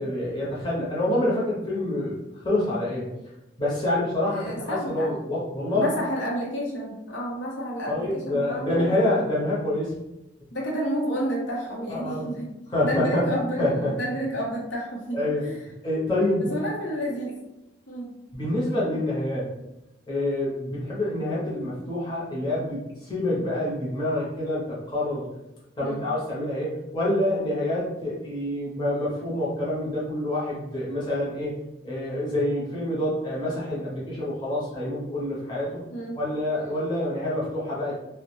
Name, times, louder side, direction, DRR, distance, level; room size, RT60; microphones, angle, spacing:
voice 1, 0.0-2.1 2.4-3.1 3.6-5.9 7.9-9.9 11.9-12.3 12.7-13.2 13.6-14.0 15.1-15.4 15.8-16.6 18.3-19.5 20.1-25.3 25.8-31.5 31.8-35.8 36.1-37.9, left 1 dB, 25° left, -7 dB, 0.6 m, -27 dB
voice 2, 4.3-5.1 5.7-9.1 10.5-12.5 12.8-15.6 16.4-17.4 17.9-18.1 25.8-26.1 35.9-36.2, equal, 90° left, -3 dB, 0.7 m, -30 dB
2.2 x 2.1 x 3.0 m, 0.94 s
head